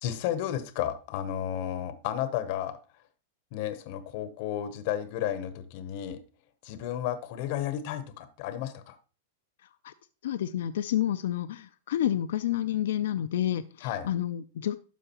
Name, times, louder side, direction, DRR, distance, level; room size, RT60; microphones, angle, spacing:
voice 1, 0.0-2.8 3.5-6.2 6.6-9.0 13.8-14.1, left 11 dB, 50° left, 11 dB, 0.8 m, -32 dB
voice 2, 10.2-14.8, left 11 dB, 75° left, 10 dB, 0.4 m, -29 dB
12.0 x 4.8 x 2.9 m, 0.36 s
supercardioid pair, 150°, 0 cm